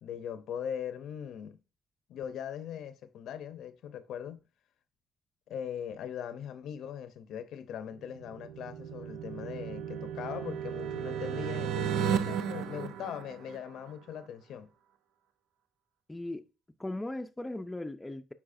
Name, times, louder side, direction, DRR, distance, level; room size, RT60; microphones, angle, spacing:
voice 1, 0.0-1.6 2.1-4.4 5.5-14.7, left 9 dB, 80° left, 0.6 m, -40 dB
sound 1, 8.0-13.9, right 8 dB, 80° right, 0.5 m, -34 dB
voice 2, 16.1-16.4 16.8-18.3, left 1 dB, 15° left, 0.5 m, -38 dB
8.6 x 4.8 x 2.6 m
cardioid pair, 90°, 0 cm